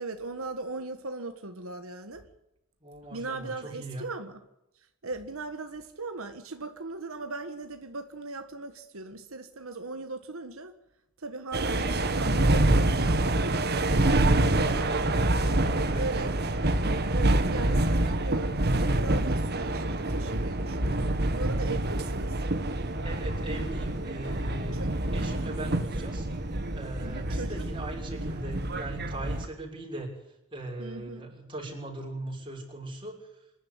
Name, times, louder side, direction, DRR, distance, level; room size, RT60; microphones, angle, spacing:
voice 1, 0.0-2.3 3.1-4.4 5.0-10.7 11.2-13.4 14.6-14.9 15.9-16.4 17.1-22.4 24.7-24.9 27.0-27.7 30.8-31.3, right 3 dB, 80° right, 7 dB, 1.6 m, -38 dB
voice 2, 2.8-4.1 11.8-12.0 13.9-15.1 15.5-16.1 23.0-24.8 25.1-26.3 26.7-30.1 30.5-33.3, right 2 dB, 25° right, 0 dB, 6.5 m, -39 dB
sound 1, 11.5-29.5, right 1 dB, 50° right, 1.7 m, -27 dB
26.0 x 11.0 x 9.6 m, 0.89 s
head